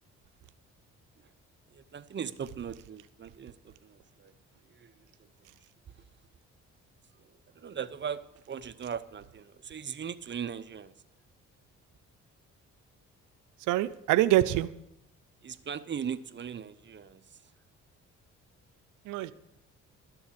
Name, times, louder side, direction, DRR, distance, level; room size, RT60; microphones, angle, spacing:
voice 1, 1.7-4.3 4.7-4.9 5.4-5.5 7.6-10.9 15.4-17.2, right 7 dB, 35° right, 0.8 m, -39 dB
voice 2, 13.7-14.7 19.1-19.3, right 14 dB, 90° right, 0.5 m, -25 dB
13.0 x 7.0 x 8.6 m
cardioid pair, 90°, 30 cm